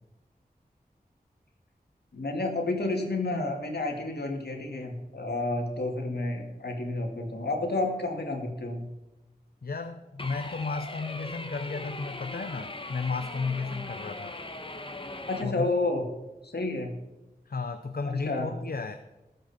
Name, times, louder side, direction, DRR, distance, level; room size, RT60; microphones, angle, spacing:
voice 1, 2.1-8.9 15.3-16.1 16.4-17.0 18.1-18.6, left 2 dB, 85° left, 2 dB, 2.4 m, -30 dB
voice 2, 9.6-14.4 15.4-15.7 17.5-19.0, left 4 dB, 70° left, 8 dB, 0.8 m, -33 dB
sound 1, 10.2-15.4, left 2 dB, 30° left, 1.3 m, -40 dB
20.0 x 8.0 x 4.3 m, 1.0 s
wide cardioid pair, 65°, 16 cm